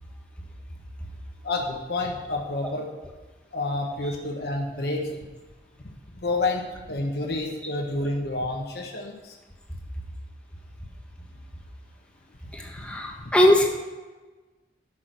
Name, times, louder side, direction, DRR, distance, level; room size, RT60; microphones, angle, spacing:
voice 1, 1.4-2.9 3.5-5.1 6.2-9.3 12.8-13.0, left 2 dB, 60° left, 1 dB, 1.3 m, -29 dB
voice 2, 12.5-13.7, left 1 dB, 5° left, 0 dB, 1.4 m, -20 dB
11.0 x 6.2 x 6.2 m, 1.2 s
head